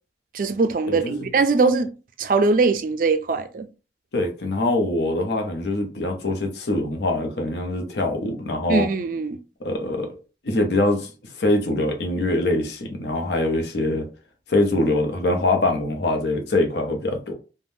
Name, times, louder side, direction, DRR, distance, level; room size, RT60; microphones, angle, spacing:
voice 1, 0.3-1.9 2.2-3.7 8.7-9.4, right 4 dB, 50° right, 0.4 m, -21 dB
voice 2, 0.9-1.3 4.1-8.9 9.6-10.2 10.4-11.1 11.4-14.1 14.5-17.3, left 2 dB, 75° left, 0.7 m, -23 dB
3.4 x 2.1 x 2.6 m
head